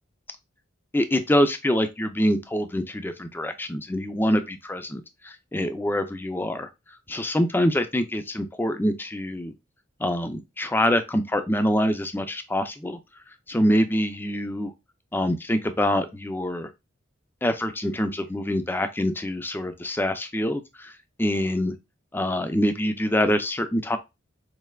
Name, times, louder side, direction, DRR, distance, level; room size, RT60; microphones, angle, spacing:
voice 1, 0.9-6.7 7.1-9.5 10.0-13.0 13.5-14.7 15.1-16.7 17.4-20.9 21.2-21.7 22.1-24.0, equal, 10° left, 0.4 m, -25 dB
4.2 x 3.2 x 2.3 m
head